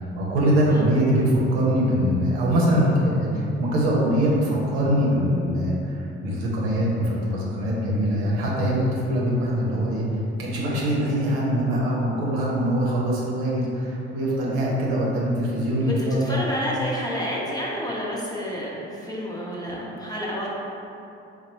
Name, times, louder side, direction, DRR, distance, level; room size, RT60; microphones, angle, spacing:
voice 1, 0.2-10.0 10.4-16.4, equal, 70° right, -5 dB, 0.8 m, -23 dB
voice 2, 16.0-20.5, equal, 10° left, -5 dB, 0.9 m, -30 dB
4.0 x 2.3 x 4.3 m, 2.9 s
figure-of-eight pair, 50°, 33 cm